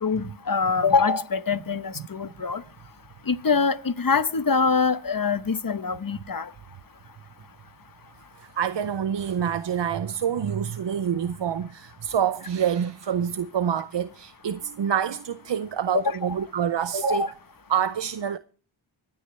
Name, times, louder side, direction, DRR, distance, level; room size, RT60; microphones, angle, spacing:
voice 1, 0.0-2.6 3.3-6.5 15.9-16.3 17.1-17.3, left 5 dB, 45° left, 1.0 m, -24 dB
voice 2, 8.4-17.3 17.7-18.4, right 8 dB, 60° right, 0.6 m, -27 dB
25.0 x 9.6 x 3.2 m
cardioid pair, 45°, 49 cm